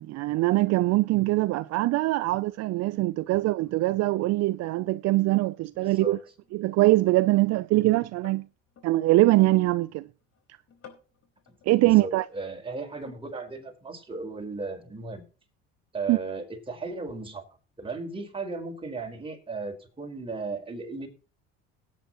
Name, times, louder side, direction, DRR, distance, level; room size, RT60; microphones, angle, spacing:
voice 1, 0.0-6.2 6.5-8.4 8.8-10.0 11.7-12.2 16.1-16.2, right 18 dB, 60° right, 0.6 m, -23 dB
sound 1, 5.4-5.5 6.0-9.0 9.4-9.8 10.2-10.4 10.7-11.9 12.8-13.5 13.8-13.9, left 7 dB, 55° left, 4.5 m, -53 dB
voice 2, 5.8-6.2 11.5-11.6 11.8-15.2 15.9-17.4 17.8-21.1, right 3 dB, 20° right, 4.4 m, -36 dB
17.5 x 9.5 x 3.0 m
supercardioid pair, 90°, 29 cm